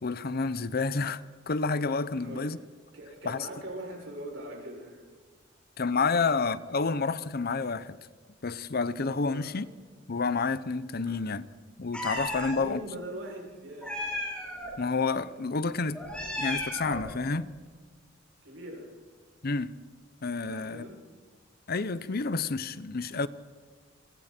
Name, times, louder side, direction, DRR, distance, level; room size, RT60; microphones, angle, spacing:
voice 1, 0.0-2.6 3.2-3.5 5.8-8.0 8.4-9.7 10.1-11.5 11.8-12.8 14.8-16.0 16.4-17.5 19.4-19.7 20.2-20.9 21.7-23.3, left 4 dB, 55° left, 0.8 m, -29 dB
voice 2, 2.2-2.6 2.9-5.1 9.2-9.5 11.1-11.2 12.5-13.9 18.4-18.9 20.5-21.0, right 1 dB, 80° right, 7.0 m, -41 dB
Meow, 11.9-12.6 13.8-14.7 15.9-17.1, left 1 dB, 5° left, 7.9 m, -34 dB
28.5 x 24.0 x 4.5 m
head